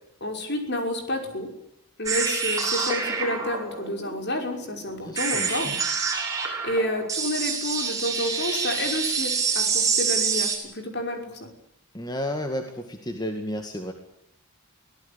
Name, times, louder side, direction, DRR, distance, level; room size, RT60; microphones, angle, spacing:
voice 1, 0.2-1.5 2.0-5.8 6.6-11.5, left 1 dB, 50° left, 4 dB, 5.7 m, -30 dB
sound 1, 2.1-10.6, right 5 dB, 15° right, 7.0 m, -27 dB
voice 2, 5.0-5.7 11.9-13.9, left 1 dB, 20° left, 5 dB, 2.0 m, -32 dB
24.5 x 17.5 x 8.7 m, 0.79 s
head